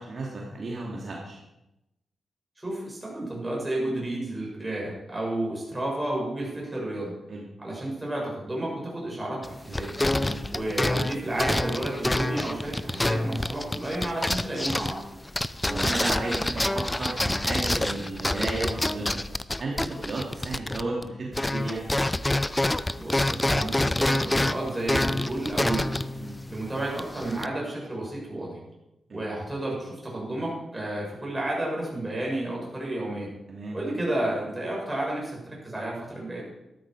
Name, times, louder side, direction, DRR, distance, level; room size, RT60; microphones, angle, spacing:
voice 1, 0.0-1.4 7.3-7.4 10.1-10.5 15.6-19.2 19.6-21.9 26.2-26.4 29.1-29.2 33.5-33.8, right 2 dB, 50° right, -3 dB, 2.6 m, -33 dB
voice 2, 2.6-7.1 7.6-9.9 10.5-15.0 22.9-25.9 26.5-28.6 29.1-33.3 33.7-36.4, right 1 dB, 10° right, -3 dB, 6.7 m, -31 dB
sound 1, 9.4-21.1 21.3-27.5, left 1 dB, 15° left, 0.5 m, -27 dB
13.5 x 12.5 x 4.9 m, 0.92 s
cardioid pair, 105°, 0 cm